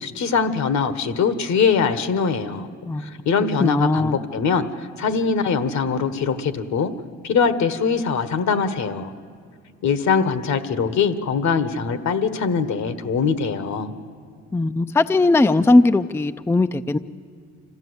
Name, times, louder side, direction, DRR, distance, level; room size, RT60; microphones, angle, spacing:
voice 1, 0.0-2.7 3.0-4.7 5.0-6.9 7.2-9.1 9.8-13.9, left 5 dB, 65° left, 10 dB, 1.4 m, -22 dB
voice 2, 2.9-3.2 3.6-4.2 14.5-17.0, left 2 dB, 10° left, 10 dB, 0.4 m, -18 dB
26.0 x 15.0 x 8.1 m, 2.3 s
cardioid pair, 90°, 30 cm